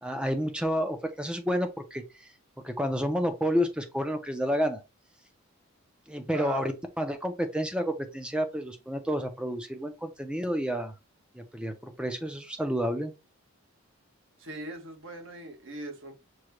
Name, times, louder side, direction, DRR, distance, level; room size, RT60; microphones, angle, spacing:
voice 1, 0.0-2.3 2.6-4.8 6.1-10.9 11.3-13.1, equal, 5° right, 0.5 m, -30 dB
voice 2, 6.3-6.7 14.4-16.2, right 1 dB, 55° right, 1.0 m, -40 dB
6.2 x 2.2 x 2.9 m
head